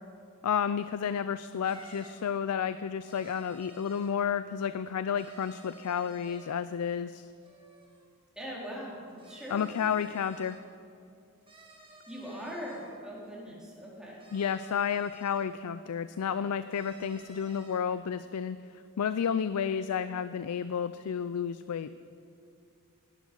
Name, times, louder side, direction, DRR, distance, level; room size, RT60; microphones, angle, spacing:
voice 1, 0.4-7.3 9.5-10.6 14.3-18.6 19.0-21.9, left 7 dB, 90° left, 13 dB, 0.4 m, -31 dB
sound 1, 0.8-0.9 1.6-2.3 3.0-4.2 5.1-6.6 7.4-8.1 9.1-10.6 11.4-12.9 14.2-15.5 16.7-17.8, right 1 dB, 25° right, 2.3 m, -55 dB
voice 2, 8.4-9.7 12.1-14.2, equal, 5° right, -6 dB, 3.9 m, -41 dB
16.5 x 11.5 x 5.4 m, 2.5 s
head